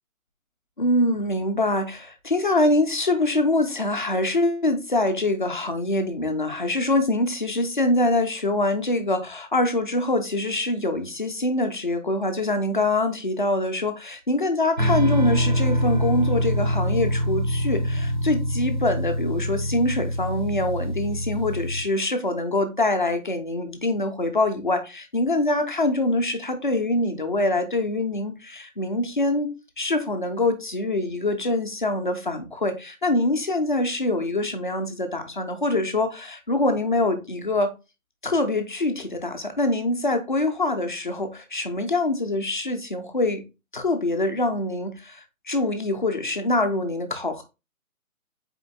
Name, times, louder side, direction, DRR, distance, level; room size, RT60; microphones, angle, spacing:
voice 1, 0.8-37.7 38.2-43.4 43.7-47.4, left 2 dB, 35° left, 0.6 m, -24 dB
sound 1, 14.8-21.8, equal, 35° right, 0.5 m, -25 dB
4.2 x 3.6 x 2.6 m
hypercardioid pair, 165°, 42 cm